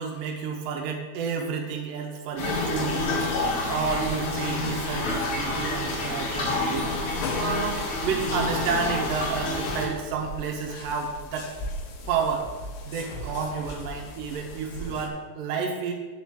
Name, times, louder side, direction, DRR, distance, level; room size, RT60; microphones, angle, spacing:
voice 1, 0.0-3.3 3.7-6.9 7.3-11.5 12.1-12.5 12.8-15.9, right 5 dB, 80° right, 2 dB, 2.0 m, -30 dB
sound 1, 2.4-9.9, left 2 dB, 75° left, 3.4 m, -28 dB
sound 2, 6.9-15.1, left 1 dB, 90° left, 3.3 m, -38 dB
7.0 x 4.2 x 6.2 m, 1.3 s
omnidirectional pair, 5.0 m